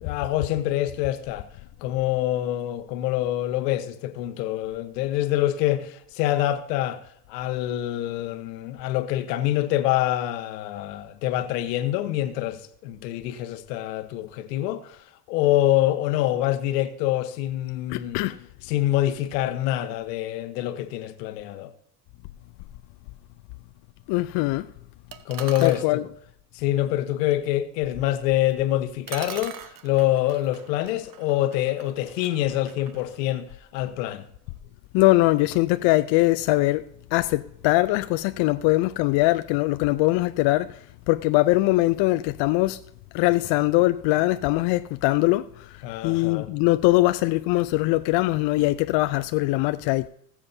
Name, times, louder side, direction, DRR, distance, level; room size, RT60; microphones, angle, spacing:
voice 1, 0.0-1.5 1.8-7.0 7.3-15.0 15.3-18.2 18.7-21.7 25.3-26.0 26.5-34.2 45.8-46.5, left 14 dB, 75° left, 1.2 m, -26 dB
voice 2, 17.9-18.4 24.1-24.7 25.6-26.0 34.9-36.8 37.1-42.8 43.1-50.1, left 19 dB, 60° left, 0.6 m, -22 dB
sound 1, 25.1-25.9 28.5-28.6 29.1-33.9, right 8 dB, 40° right, 1.2 m, -43 dB
20.5 x 7.4 x 2.7 m
hypercardioid pair, 75°, 49 cm